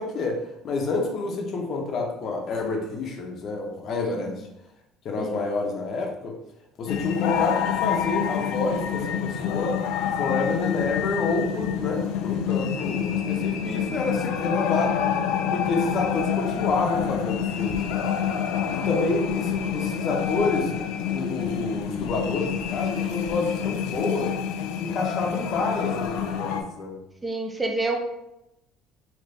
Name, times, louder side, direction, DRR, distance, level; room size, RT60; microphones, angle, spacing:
voice 1, 0.0-4.4 5.0-6.4 6.8-9.8 10.2-15.0 15.5-18.2 18.7-24.3 24.8-27.0, left 3 dB, 45° left, 1 dB, 0.6 m, -28 dB
sound 1, 6.9-26.6, left 8 dB, 80° left, 0.3 m, -27 dB
voice 2, 27.2-28.0, right 2 dB, 10° right, 2 dB, 0.5 m, -28 dB
3.3 x 2.8 x 2.6 m, 0.86 s
cardioid pair, 125°, 0 cm